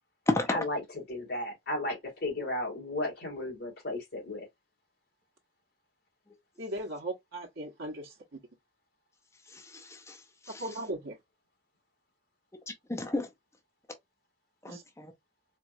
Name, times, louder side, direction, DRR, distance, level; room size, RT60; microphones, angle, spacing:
voice 1, 0.5-4.5, left 1 dB, 50° left, 2.4 m, -34 dB
voice 2, 6.6-8.1 10.6-11.1 14.7-14.8, right 1 dB, 75° right, 0.9 m, -37 dB
voice 3, 9.5-10.2 10.4-10.7 12.9-13.3 14.6-15.1, left 1 dB, 15° left, 0.6 m, -32 dB
4.4 x 2.3 x 2.6 m
head